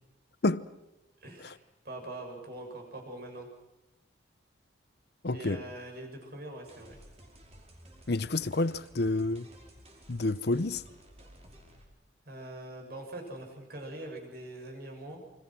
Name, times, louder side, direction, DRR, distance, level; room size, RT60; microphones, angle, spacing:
voice 1, 1.2-3.5 5.3-7.0 12.3-15.2, right 1 dB, 50° right, 7.3 m, -43 dB
voice 2, 5.2-5.6 8.1-9.5 10.1-10.8, left 2 dB, 55° left, 0.8 m, -29 dB
sound 1, 6.7-11.9, right 1 dB, 35° right, 5.1 m, -54 dB
29.0 x 25.0 x 6.1 m
head